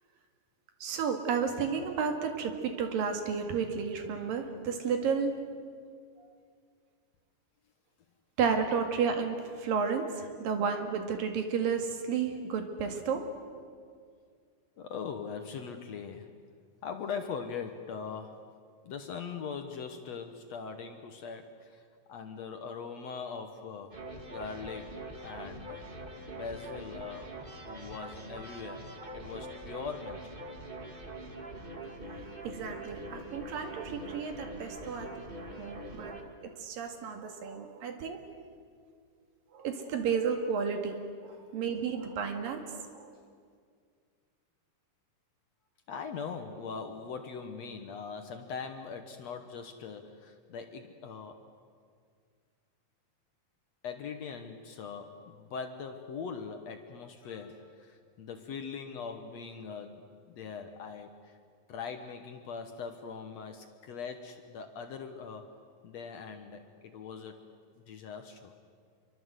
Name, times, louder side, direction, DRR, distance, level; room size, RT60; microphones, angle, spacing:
voice 1, 0.8-5.4 6.2-6.3 8.4-13.2 32.4-35.2 35.6-36.2 36.6-38.2 39.5-43.1, right 6 dB, 65° right, 5 dB, 3.6 m, -32 dB
voice 2, 14.8-16.3 16.8-18.5 18.8-21.8 22.1-24.0 24.3-24.9 25.2-25.8 26.3-27.4 27.6-28.9 29.1-30.4 35.3-35.9 41.4-41.6 45.9-51.4 53.8-61.4 61.7-65.6 65.8-67.4 67.8-68.5, left 6 dB, 70° left, 6 dB, 1.6 m, -41 dB
sound 1, 23.9-36.2, right 1 dB, 40° right, 0.7 m, -43 dB
27.0 x 24.0 x 8.1 m, 2.1 s
omnidirectional pair, 4.6 m